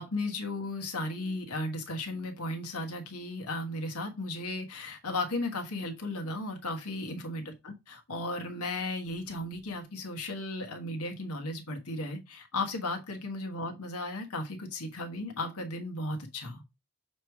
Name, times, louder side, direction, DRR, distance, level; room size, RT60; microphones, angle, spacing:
voice 1, 0.0-16.6, left 2 dB, 80° left, 1.3 m, -35 dB
6.7 x 3.2 x 4.6 m
head